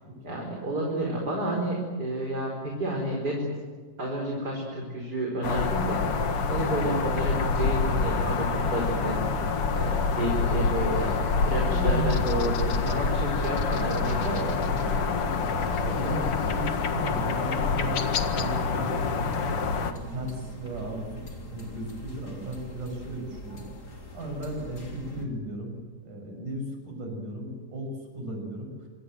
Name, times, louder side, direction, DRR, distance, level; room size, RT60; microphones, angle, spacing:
voice 1, 0.2-2.5 2.8-3.4 4.0-6.0 6.5-9.2 9.7-11.1 11.5-14.7, right 1 dB, 30° right, 0 dB, 5.2 m, -30 dB
sound 1, 5.4-19.9, left 4 dB, 50° left, 2.4 m, -26 dB
sound 2, 10.9-25.3, equal, 30° left, 3.7 m, -43 dB
voice 2, 11.7-12.3 14.6-19.2 19.8-21.2 21.5-23.7 24.1-25.8 26.0-28.7, right 1 dB, 75° right, 4 dB, 8.1 m, -35 dB
27.0 x 24.5 x 7.8 m, 1.5 s
omnidirectional pair, 3.7 m